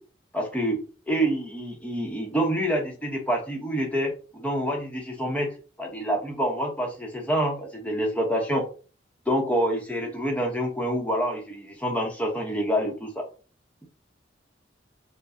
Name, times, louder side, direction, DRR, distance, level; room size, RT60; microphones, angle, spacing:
voice 1, 0.3-0.8 1.1-5.5 5.8-8.6 9.3-13.2, equal, 10° left, 1 dB, 0.9 m, -27 dB
5.9 x 2.2 x 2.7 m, 0.36 s
head